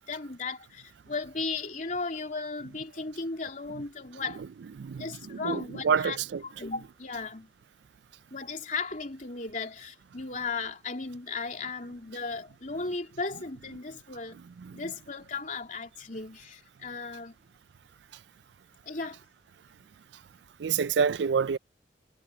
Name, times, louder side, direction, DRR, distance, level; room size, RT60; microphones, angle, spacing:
voice 1, 0.0-4.4 5.0-6.2 6.4-7.5 8.3-14.4 14.7-17.3 18.8-19.2, left 4 dB, 45° left, 3.2 m, -36 dB
voice 2, 4.8-6.4 20.6-21.6, right 6 dB, 70° right, 0.4 m, -27 dB
head